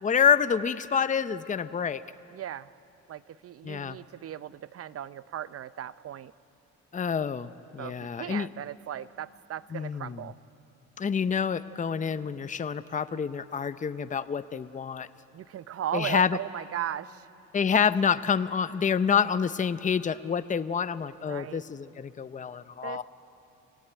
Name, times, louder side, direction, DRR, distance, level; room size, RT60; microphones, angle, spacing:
voice 1, 0.0-2.0 3.6-4.0 6.9-8.5 9.7-10.2 11.0-15.1 15.9-16.4 17.5-23.0, left 7 dB, 25° left, 14 dB, 0.6 m, -27 dB
voice 2, 2.3-2.7 3.1-6.3 7.8-10.3 15.3-17.3 21.3-21.6 22.8-23.0, right 11 dB, 50° right, 16 dB, 0.6 m, -37 dB
28.5 x 16.5 x 9.3 m, 2.9 s
cardioid pair, 90°, 30 cm